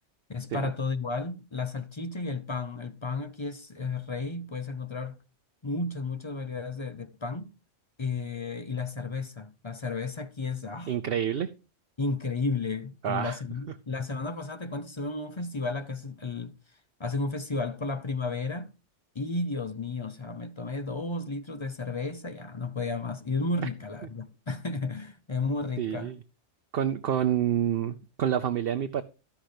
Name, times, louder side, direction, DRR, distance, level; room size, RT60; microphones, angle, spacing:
voice 1, 0.3-5.2 5.6-7.5 8.0-10.9 12.0-16.6 17.0-18.7 19.1-26.1, left 3 dB, 35° left, 0.5 m, -33 dB
voice 2, 10.9-11.5 13.0-13.4 25.8-26.2 26.7-29.0, right 9 dB, 60° right, 0.8 m, -28 dB
13.0 x 5.9 x 5.0 m
omnidirectional pair, 1.2 m